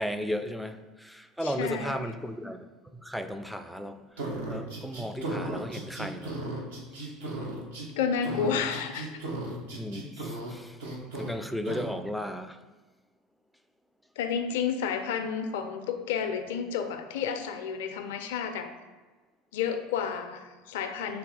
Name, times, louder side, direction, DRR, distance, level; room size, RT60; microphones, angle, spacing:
voice 1, 0.0-6.4 6.9-7.1 9.6-10.8 11.2-12.6, equal, ahead, 0.3 m, -35 dB
voice 2, 1.4-2.0 7.9-9.1 14.2-18.7 19.5-21.2, left 7 dB, 70° left, 0.4 m, -31 dB
sound 1, 4.2-7.9 8.2-10.5 10.8-11.3 11.7-11.9, right 2 dB, 80° right, 0.8 m, -35 dB
3.4 x 3.2 x 4.8 m
hypercardioid pair, 75°, 0 cm